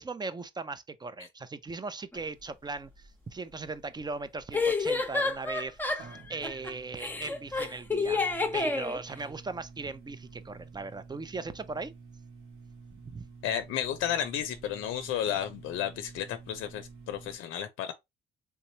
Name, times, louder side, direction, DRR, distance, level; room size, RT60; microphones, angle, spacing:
voice 1, 0.0-2.9 3.3-8.2 8.5-11.9 13.0-13.3, right 3 dB, 20° right, 0.5 m, -38 dB
sound 1, 2.1-2.2 4.5-6.7 7.0-9.0, left 3 dB, 10° left, 0.8 m, -29 dB
sound 2, 2.2-17.4, right 4 dB, 80° right, 1.7 m, -51 dB
voice 2, 13.4-17.9, left 10 dB, 90° left, 0.5 m, -32 dB
3.4 x 3.0 x 2.7 m
cardioid pair, 90°, 20 cm